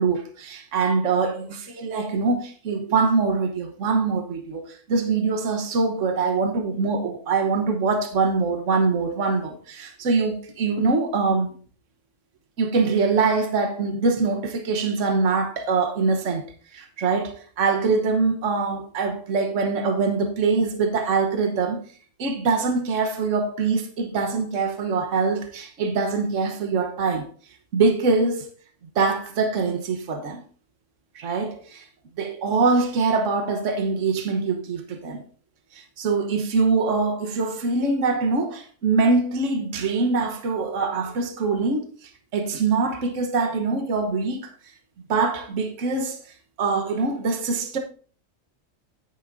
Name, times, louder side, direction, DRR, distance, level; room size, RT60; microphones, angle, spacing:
voice 1, 0.0-11.5 12.6-16.4 16.7-21.8 22.2-27.3 27.7-28.5 28.9-30.4 31.1-31.9 32.2-35.2 35.7-44.5 45.1-46.2 46.6-47.8, right 4 dB, 65° right, 1.4 m, -23 dB
9.9 x 9.2 x 2.6 m
omnidirectional pair, 1.4 m